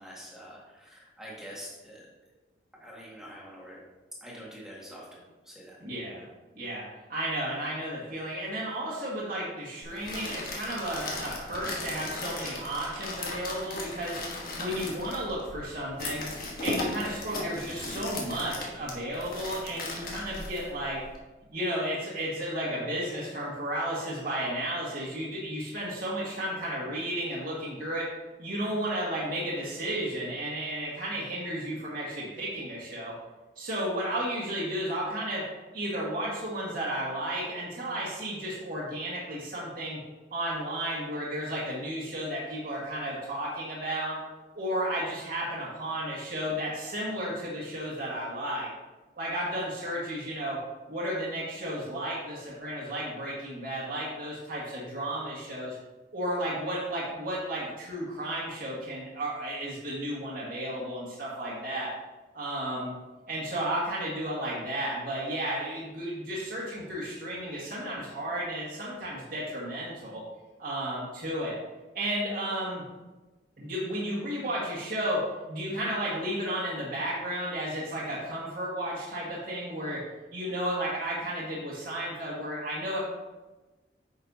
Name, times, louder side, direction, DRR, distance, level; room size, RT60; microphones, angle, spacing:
voice 1, 0.0-2.1 2.8-3.8 4.2-5.1 5.4-5.8, equal, 5° right, -5 dB, 1.8 m, -45 dB
voice 2, 5.8-6.3 6.6-6.8 7.1-14.2 14.6-16.2 16.6-21.0 21.5-28.1 28.4-33.1 33.6-35.4 35.7-40.0 40.3-44.2 44.5-48.7 49.2-50.6 50.9-55.8 56.1-61.9 62.3-62.9 63.3-70.2 70.6-71.5 71.9-72.8 73.6-80.0 80.3-83.0, right 1 dB, 50° right, -7 dB, 1.6 m, -33 dB
sound 1, 9.8-21.2, left 2 dB, 50° left, 1.4 m, -37 dB
9.3 x 6.4 x 2.7 m, 1.2 s
head